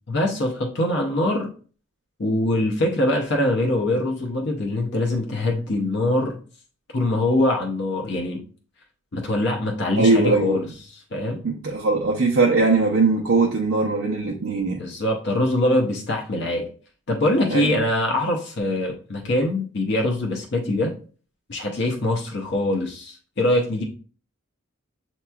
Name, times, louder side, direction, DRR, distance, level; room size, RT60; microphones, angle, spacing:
voice 1, 0.1-1.5 2.2-6.4 6.9-8.4 9.1-10.7 10.9-11.4 14.8-16.7 17.1-20.9 21.5-23.8, left 1 dB, 50° left, 1 dB, 0.6 m, -23 dB
voice 2, 10.0-10.7 11.4-14.8 17.5-17.8, right 3 dB, 75° right, -2 dB, 0.6 m, -20 dB
6.7 x 2.9 x 2.3 m, 0.40 s
head